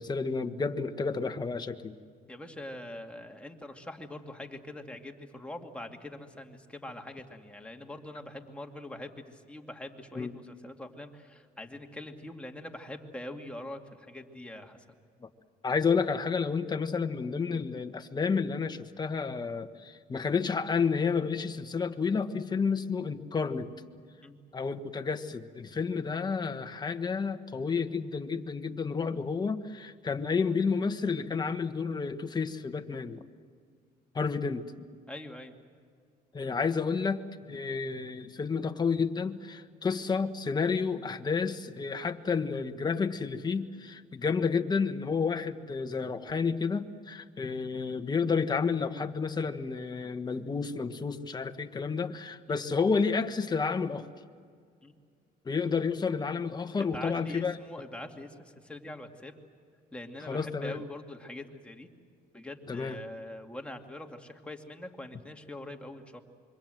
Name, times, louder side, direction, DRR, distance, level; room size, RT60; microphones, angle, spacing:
voice 1, 0.0-1.9 10.2-10.3 15.2-15.3 15.6-23.7 24.5-33.2 34.1-34.6 36.3-54.1 55.4-57.5 60.3-60.8 62.7-63.0, left 5 dB, 25° left, 8 dB, 1.4 m, -30 dB
voice 2, 2.3-14.8 24.2-24.4 35.1-35.5 52.5-52.6 54.8-54.9 56.8-59.4 59.9-61.9 62.3-66.2, left 1 dB, 5° left, 2 dB, 2.4 m, -43 dB
26.0 x 24.0 x 7.8 m, 2.1 s
cardioid pair, 110°, 17 cm